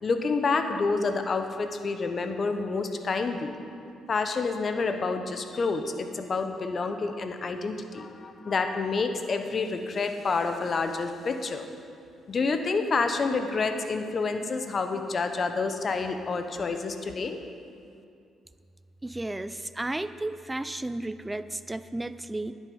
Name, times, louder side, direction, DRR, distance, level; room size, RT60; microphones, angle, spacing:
voice 1, 0.0-3.5 4.1-11.7 12.3-17.4, left 4 dB, 45° left, 7 dB, 0.9 m, -28 dB
voice 2, 19.0-22.5, right 2 dB, 10° right, 12 dB, 0.4 m, -33 dB
10.5 x 9.1 x 5.5 m, 2.4 s
cardioid pair, 90°, 0 cm